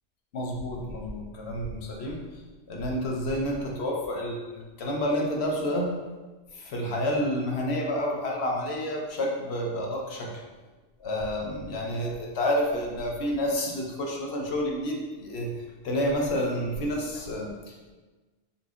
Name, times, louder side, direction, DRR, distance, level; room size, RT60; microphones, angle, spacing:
voice 1, 0.3-2.2 2.7-5.9 6.5-10.3 11.0-15.5 15.8-17.9, equal, 65° left, -1 dB, 0.9 m, -29 dB
4.1 x 3.7 x 2.4 m, 1.3 s
omnidirectional pair, 1.2 m